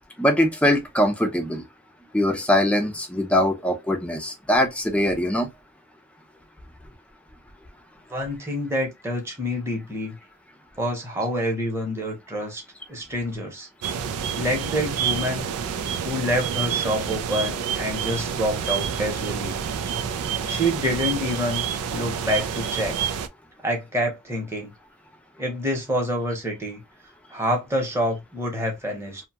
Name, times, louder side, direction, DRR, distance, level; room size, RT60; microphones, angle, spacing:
voice 1, 0.2-1.6 2.1-5.5, equal, 5° left, 0.5 m, -22 dB
voice 2, 8.1-10.2 10.8-12.6 12.9-13.7 14.3-15.5 16.0-19.6 20.5-21.6 21.9-23.0 23.6-24.7 25.4-26.8 27.3-29.2, equal, 10° right, 0.9 m, -27 dB
sound 1, 13.8-23.3, right 7 dB, 90° right, 0.4 m, -28 dB
2.7 x 2.2 x 2.8 m
head